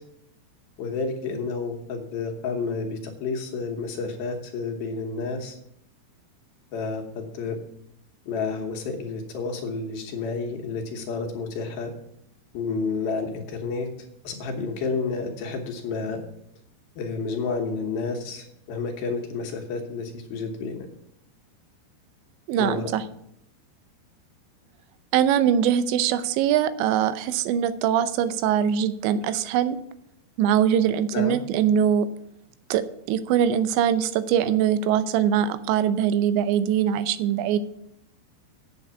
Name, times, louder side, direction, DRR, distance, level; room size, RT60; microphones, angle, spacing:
voice 1, 0.8-5.6 6.7-7.6 8.3-11.9 12.5-13.9 14.2-16.2 17.0-20.8 22.6-22.9 31.1-31.4, left 4 dB, 70° left, 3 dB, 2.7 m, -30 dB
voice 2, 22.5-23.0 25.1-29.8 30.4-32.1 32.7-37.6, right 9 dB, 90° right, 13 dB, 3.0 m, -22 dB
8.3 x 7.9 x 7.0 m, 0.74 s
omnidirectional pair, 5.0 m